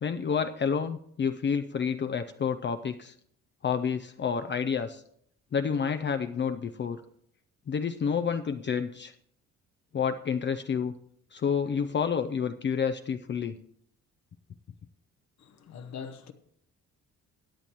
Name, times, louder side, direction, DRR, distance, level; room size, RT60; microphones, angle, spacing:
voice 1, 0.0-3.1 3.6-5.0 5.5-7.0 7.7-9.1 9.9-10.9 11.3-13.6, left 6 dB, 40° left, 0.5 m, -29 dB
voice 2, 15.4-16.3, left 6 dB, 65° left, 1.0 m, -42 dB
17.0 x 8.9 x 3.0 m
cardioid pair, 90°, 30 cm